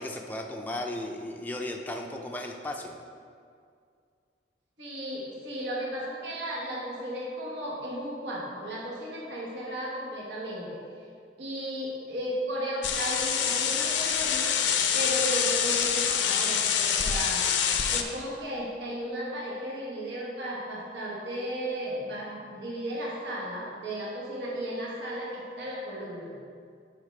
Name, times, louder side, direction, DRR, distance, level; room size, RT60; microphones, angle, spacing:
voice 1, 0.0-3.0, left 1 dB, 10° left, 1 dB, 0.4 m, -35 dB
voice 2, 4.8-10.8 11.4-14.6 14.9-17.5 17.9-26.3, equal, 70° right, -5 dB, 1.3 m, -35 dB
sound 1, 12.8-18.0, left 8 dB, 80° left, 0.5 m, -26 dB
10.5 x 4.4 x 3.2 m, 2.2 s
head